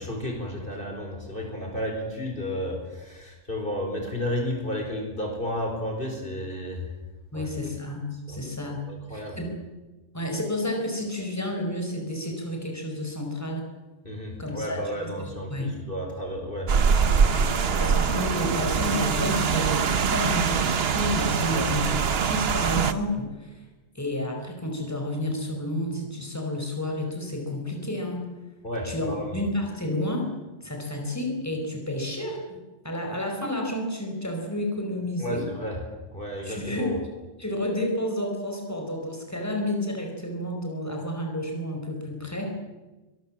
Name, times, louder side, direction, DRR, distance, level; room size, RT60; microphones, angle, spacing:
voice 1, 0.0-7.0 7.3-7.5 8.3-8.4 8.9-9.4 14.0-17.7 21.5-21.7 28.6-29.4 35.2-35.8 36.1-36.9, left 1 dB, 45° left, 2 dB, 4.8 m, -32 dB
voice 2, 7.3-9.5 10.1-13.6 14.4-15.1 15.5-15.7 17.3-21.9 22.2-23.6 23.9-28.2 28.8-30.3 30.6-32.6 32.8-35.4 36.4-37.0 37.4-42.5, left 1 dB, 10° left, 2 dB, 5.0 m, -30 dB
Rain, 16.7-22.9, right 6 dB, 55° right, 1.1 m, -23 dB
24.5 x 22.0 x 7.5 m, 1.2 s
omnidirectional pair, 1.3 m